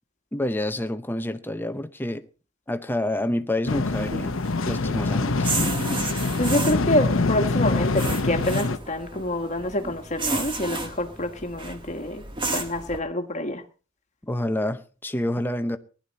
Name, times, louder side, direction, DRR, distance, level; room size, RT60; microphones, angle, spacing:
voice 1, 0.3-2.2 2.7-4.4 4.6-5.5 5.8-6.1 14.2-15.8, left 1 dB, 10° left, 0.8 m, -28 dB
sound 1, 3.7-8.8, left 3 dB, 75° left, 0.9 m, -25 dB
sound 2, 3.8-13.0, right 2 dB, 25° right, 1.7 m, -33 dB
voice 2, 6.4-12.2 12.5-13.6, left 1 dB, 35° left, 1.6 m, -27 dB
19.0 x 11.5 x 4.2 m
head